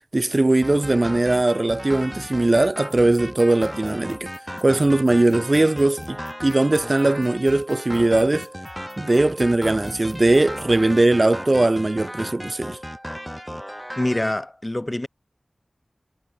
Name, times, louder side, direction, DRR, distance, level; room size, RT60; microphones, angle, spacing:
voice 1, 0.1-4.3 4.6-8.5 9.0-12.8, right 2 dB, 45° right, 0.3 m, -20 dB
sound 1, 0.6-14.3, equal, ahead, 2.0 m, -35 dB
sound 2, 2.9-10.7, left 2 dB, 60° left, 2.5 m, -46 dB
voice 2, 14.0-15.1, left 1 dB, 25° left, 0.6 m, -25 dB
wide cardioid pair, 45°, 0 cm